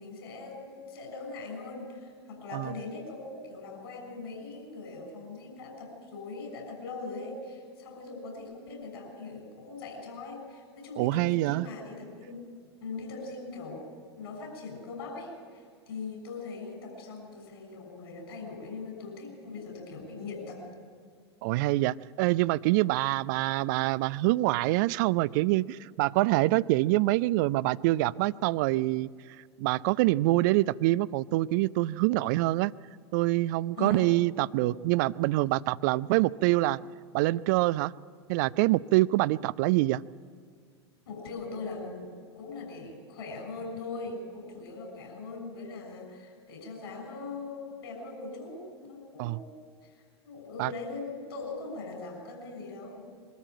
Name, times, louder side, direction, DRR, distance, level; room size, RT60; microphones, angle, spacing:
voice 1, 0.0-12.4 12.8-13.9 14.2-20.6 33.7-34.1 41.1-49.5 49.8-49.9 50.2-53.0, left 3 dB, 60° left, 3 dB, 6.7 m, -41 dB
voice 2, 11.0-11.7 21.4-29.1 29.6-32.7 33.1-36.8 37.1-37.9 38.3-40.0 49.2-49.4 50.6-50.7, right 18 dB, 45° right, 21 dB, 0.4 m, -25 dB
23.0 x 13.5 x 8.9 m, 2.1 s
figure-of-eight pair, 90°, 14 cm